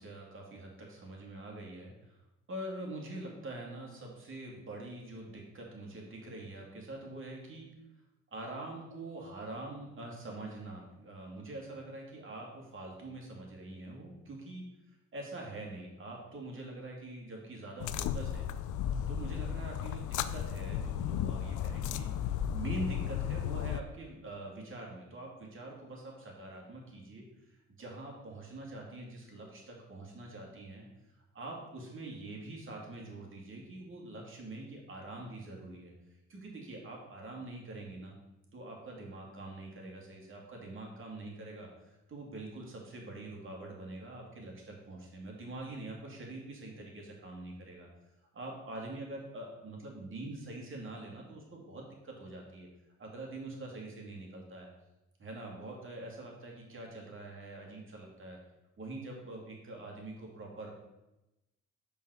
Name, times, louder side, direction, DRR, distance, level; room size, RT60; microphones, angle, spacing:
voice 1, 0.0-2.2 2.5-7.7 8.3-14.6 15.1-18.5 19.1-30.9 31.3-35.9 36.3-38.1 38.5-47.9 48.3-52.7 53.0-54.7 55.2-58.4 58.8-60.7, right 2 dB, 40° right, -1 dB, 2.2 m, -44 dB
sound 1, 17.8-23.8, left 10 dB, 80° left, 0.5 m, -34 dB
5.6 x 4.2 x 6.2 m, 0.97 s
cardioid pair, 90°, 30 cm